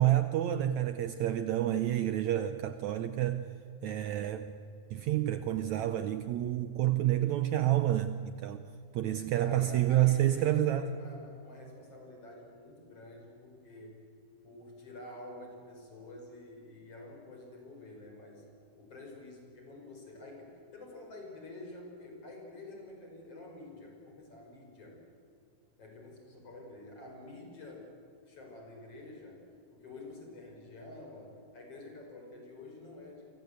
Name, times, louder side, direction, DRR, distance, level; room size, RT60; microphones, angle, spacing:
voice 1, 0.0-3.5 3.8-4.5 4.9-8.6 8.9-10.8, right 13 dB, 90° right, 10 dB, 1.6 m, -29 dB
voice 2, 9.1-14.0 14.4-18.5 18.8-25.0 25.8-27.9 28.3-33.3, left 2 dB, 40° left, 1 dB, 6.1 m, -48 dB
28.0 x 24.5 x 8.1 m, 2.5 s
omnidirectional pair, 4.3 m